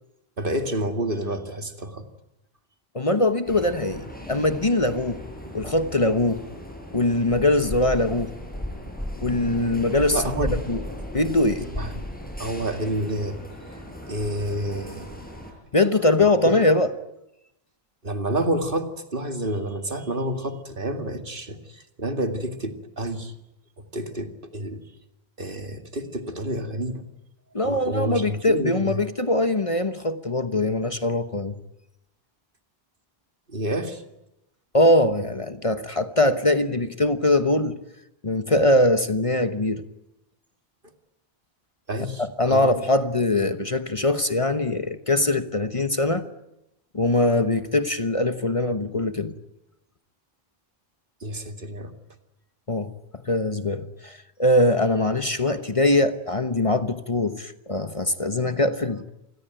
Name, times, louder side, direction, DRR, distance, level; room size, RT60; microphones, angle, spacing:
voice 1, 0.4-2.1 10.1-10.8 11.8-12.0 12.4-13.4 14.1-15.1 16.4-16.5 18.0-23.3 23.9-24.8 25.4-27.0 27.6-28.9 33.5-34.0 41.9-42.7 51.2-51.9, right 1 dB, 60° right, 2.4 m, -29 dB
voice 2, 2.9-5.2 5.5-6.4 6.9-8.3 9.2-10.8 11.1-11.7 15.7-16.9 27.5-31.6 34.7-37.8 38.2-39.8 42.2-46.2 46.9-49.4 52.7-52.9 53.2-59.0, left 1 dB, 35° left, 1.2 m, -22 dB
sound 1, 3.5-15.5, equal, 10° left, 6.5 m, -36 dB
27.5 x 21.0 x 9.1 m
omnidirectional pair, 1.0 m